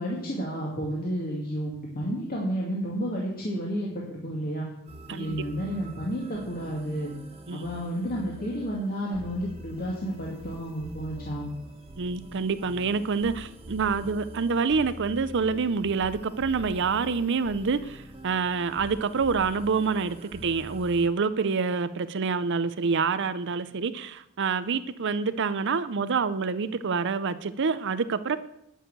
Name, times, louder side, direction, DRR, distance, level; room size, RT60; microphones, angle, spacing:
voice 1, 0.0-4.7 5.1-7.1 7.5-11.5, equal, 45° left, 2.3 m, -31 dB
sound 1, 4.9-21.1, right 1 dB, 30° right, 1.6 m, -45 dB
voice 2, 12.0-28.4, right 5 dB, 55° right, 0.6 m, -27 dB
10.5 x 6.5 x 8.9 m
head